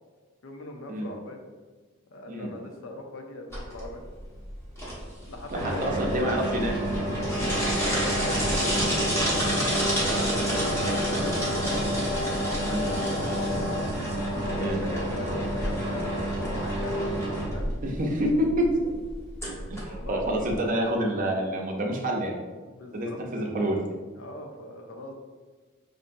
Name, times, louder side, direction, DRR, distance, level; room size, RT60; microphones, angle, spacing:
voice 1, 0.4-1.4 2.1-4.0 5.2-6.6 7.8-9.8 10.3-11.7 12.2-13.7 14.4-17.7 19.6-20.5 22.6-23.2 24.2-25.1, left 1 dB, 65° left, 3 dB, 0.6 m, -40 dB
sound 1, 3.5-20.5, equal, 15° left, 1.1 m, -28 dB
voice 2, 5.5-6.8 12.7-12.9 14.6-14.8 17.8-19.0 19.7-22.4 22.9-23.8, right 1 dB, 40° right, 0 dB, 0.6 m, -27 dB
5.6 x 2.6 x 2.6 m, 1.4 s
head